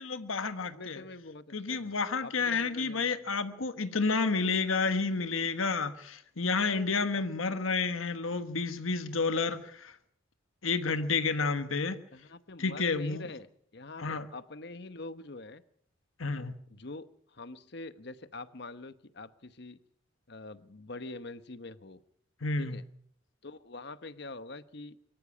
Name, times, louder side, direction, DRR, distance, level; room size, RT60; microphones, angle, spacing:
voice 1, 0.0-1.0 1.5-10.0 10.6-12.0 12.6-13.3 14.0-14.3 16.2-16.6 22.4-22.8, left 4 dB, 85° left, 10 dB, 1.3 m, -30 dB
voice 2, 0.7-1.9 2.2-3.3 12.1-13.5 13.7-14.0 14.3-15.6 16.7-17.1 17.3-19.8 20.3-22.0 22.6-22.8 23.4-24.9, left 2 dB, 55° left, 13 dB, 1.0 m, -44 dB
24.0 x 14.0 x 8.4 m, 0.69 s
head